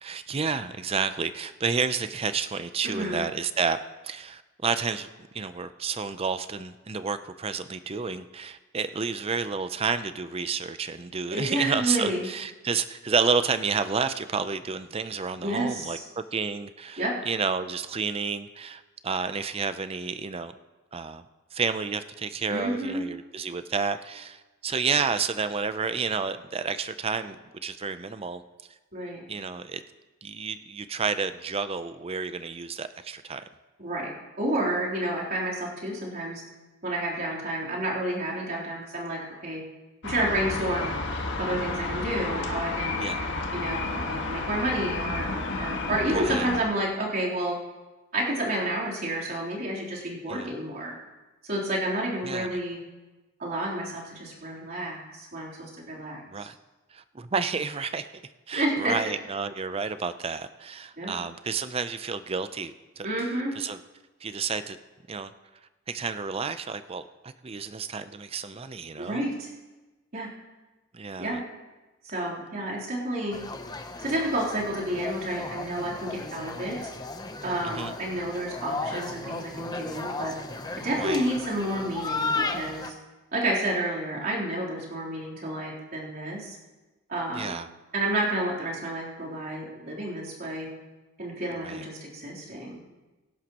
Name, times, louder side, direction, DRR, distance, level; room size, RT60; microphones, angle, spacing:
voice 1, 0.0-3.8 4.0-5.1 5.3-16.0 16.3-20.5 20.9-21.2 21.5-28.4 29.3-29.8 30.2-33.4 43.0-43.2 46.1-46.5 50.3-50.5 52.2-52.5 56.3-56.5 56.9-58.1 58.5-63.1 63.6-63.8 64.2-64.8 65.1-65.3 65.9-69.2 70.9-71.4 77.6-77.9 81.0-81.2 87.3-87.7 91.6-91.8, right 5 dB, 30° right, 12 dB, 0.5 m, -30 dB
voice 2, 2.8-3.2 11.3-12.3 15.4-16.0 17.0-17.1 22.5-23.0 28.9-29.2 33.8-36.4 36.8-39.6 40.0-40.9 41.4-43.0 43.5-47.6 48.1-50.9 51.4-52.8 53.4-56.2 58.5-58.9 61.0-61.1 63.0-63.5 69.0-69.5 70.1-70.3 71.2-71.4 72.0-73.4 74.0-76.9 77.4-80.3 80.8-82.9 83.3-86.5 87.1-87.5 87.9-90.7 91.2-92.8, right 1 dB, 50° right, -5 dB, 3.5 m, -30 dB
sound 1, 40.0-46.6, left 3 dB, 60° left, 1.6 m, -31 dB
sound 2, 73.3-82.9, left 3 dB, 20° left, 0.8 m, -35 dB
24.5 x 11.0 x 3.0 m, 1.1 s
head